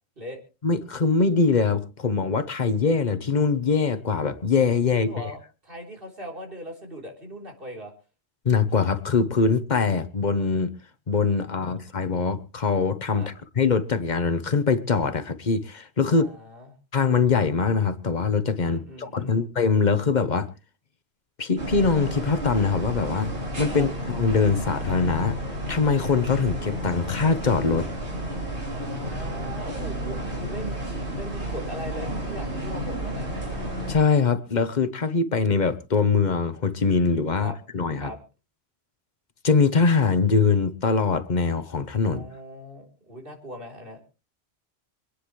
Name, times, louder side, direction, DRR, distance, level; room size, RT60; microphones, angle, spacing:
voice 1, 0.6-5.3 8.4-10.7 11.1-16.3 16.9-20.5 21.4-23.3 23.6-25.4 25.7-27.9 33.9-38.1 39.4-42.3, left 5 dB, 45° left, 1.1 m, -23 dB
voice 2, 4.9-7.9 13.1-13.3 16.1-16.7 18.6-19.5 23.7-23.9 28.7-33.4 37.4-37.6 38.0-38.2 42.0-44.1, equal, 55° right, 4.0 m, -39 dB
sound 1, 21.6-34.0, right 1 dB, 85° right, 3.9 m, -31 dB
26.0 x 9.9 x 3.2 m
omnidirectional pair, 1.1 m